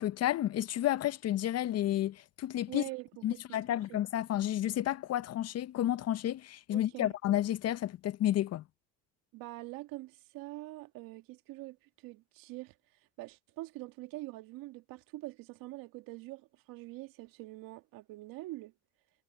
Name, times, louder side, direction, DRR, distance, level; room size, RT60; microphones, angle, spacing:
voice 1, 0.0-2.8 3.2-8.6, left 12 dB, 45° left, 0.7 m, -31 dB
voice 2, 2.7-4.0 6.7-7.1 9.3-12.7 13.2-18.7, right 19 dB, 70° right, 2.0 m, -45 dB
supercardioid pair, 85°, 36 cm